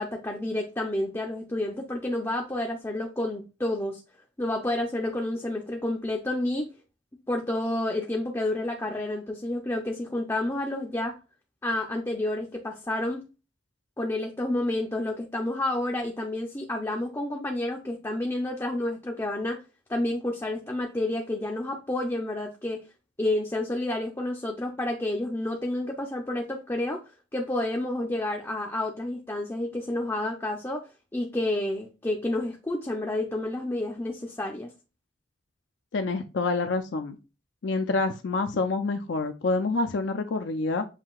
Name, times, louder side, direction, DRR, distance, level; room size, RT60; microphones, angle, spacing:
voice 1, 0.0-4.0 4.4-6.7 7.3-11.2 11.6-13.2 14.0-19.6 19.9-22.8 23.2-27.0 27.3-34.7, left 1 dB, 15° left, 0.5 m, -30 dB
voice 2, 35.9-37.1 37.6-40.8, left 3 dB, 70° left, 0.5 m, -27 dB
7.4 x 2.7 x 2.3 m
head